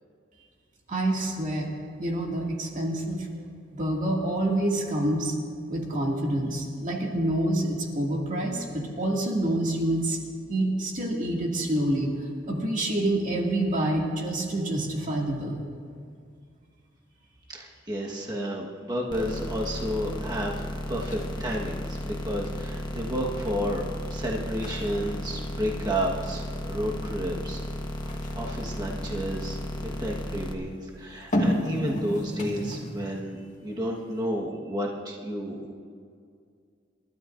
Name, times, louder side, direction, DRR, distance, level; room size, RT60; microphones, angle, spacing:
voice 1, 0.9-3.4 3.7-5.4 5.7-10.2 10.5-12.1 12.5-15.6, right 1 dB, 40° right, -1 dB, 2.2 m, -27 dB
voice 2, 17.5-23.8 24.1-27.6 28.0-29.6 29.8-35.7, equal, 20° right, -2 dB, 1.4 m, -31 dB
sound 1, 19.1-30.5, left 1 dB, 25° left, 1.2 m, -34 dB
sound 2, 20.3-20.6 21.0-22.7 23.1-23.5 24.0-24.1 24.5-26.4 27.9-29.8 31.1-33.4 33.7-33.8, equal, 40° left, 1.8 m, -32 dB
29.0 x 13.0 x 2.6 m, 2.2 s
head